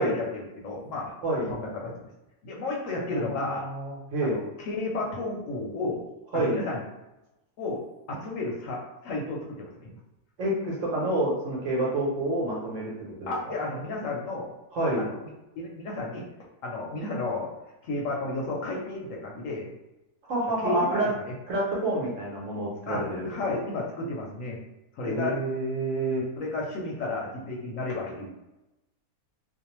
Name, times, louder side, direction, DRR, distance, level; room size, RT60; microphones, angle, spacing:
voice 1, 0.0-1.1 1.5-2.1 2.4-3.7 4.2-6.0 6.3-6.8 7.6-10.0 13.3-14.5 15.0-15.2 15.5-16.3 16.6-17.5 17.8-19.7 20.6-21.3 22.9-24.6 24.9-25.4 26.4-28.3, left 2 dB, 70° left, -2 dB, 0.9 m, -32 dB
voice 2, 3.1-4.4 6.3-6.6 10.4-13.3 14.7-15.1 20.3-21.1 21.5-23.2 25.0-26.2, right 1 dB, 65° right, -4 dB, 1.0 m, -28 dB
2.6 x 2.0 x 2.9 m, 0.97 s
omnidirectional pair, 1.6 m